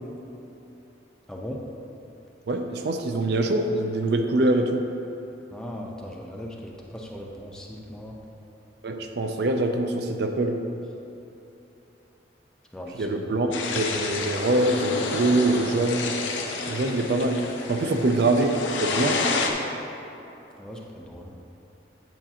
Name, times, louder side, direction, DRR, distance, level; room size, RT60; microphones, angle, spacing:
voice 1, 1.3-1.6 5.5-8.2 12.7-13.1 17.8-18.0 20.6-21.3, equal, 5° left, -2 dB, 0.5 m, -38 dB
voice 2, 2.5-4.9 8.8-10.6 12.9-16.1 16.7-19.2, right 2 dB, 60° right, 5 dB, 0.4 m, -24 dB
sound 1, 13.5-19.5, left 3 dB, 85° left, 0.7 m, -30 dB
9.0 x 5.9 x 2.8 m, 3.0 s
head